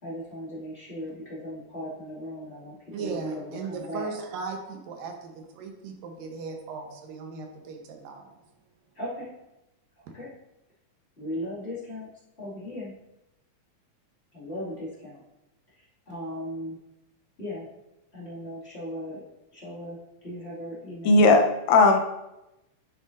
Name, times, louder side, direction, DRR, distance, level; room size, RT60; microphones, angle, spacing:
voice 1, 0.0-4.1 8.9-9.3 10.0-10.3 11.2-12.1 12.4-12.9 14.3-15.2 15.7-16.8 17.4-17.7 18.1-19.2 19.5-21.2, equal, 25° left, -8 dB, 1.9 m, -37 dB
voice 2, 2.9-8.3 10.1-10.2, right 4 dB, 85° right, 3 dB, 2.7 m, -37 dB
voice 3, 21.1-22.0, left 3 dB, 85° left, 4 dB, 2.5 m, -17 dB
10.5 x 6.7 x 2.6 m, 0.93 s
omnidirectional pair, 3.9 m